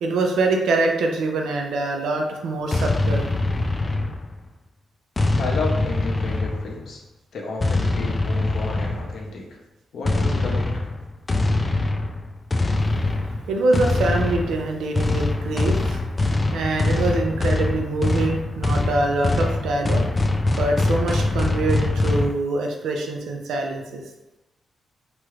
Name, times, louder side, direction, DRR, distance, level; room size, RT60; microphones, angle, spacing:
voice 1, 0.0-3.3 13.5-16.0 16.5-20.0 20.6-24.0, right 2 dB, 85° right, 2 dB, 0.5 m, -24 dB
sound 1, 2.7-4.5 5.2-6.9 7.6-9.2 10.0-22.3, left 2 dB, 25° left, 0.3 m, -23 dB
voice 2, 5.4-7.0 7.3-9.6 9.9-10.8, left 3 dB, 70° left, 0 dB, 0.7 m, -32 dB
3.0 x 2.4 x 3.1 m, 0.99 s
cardioid pair, 95°, 0 cm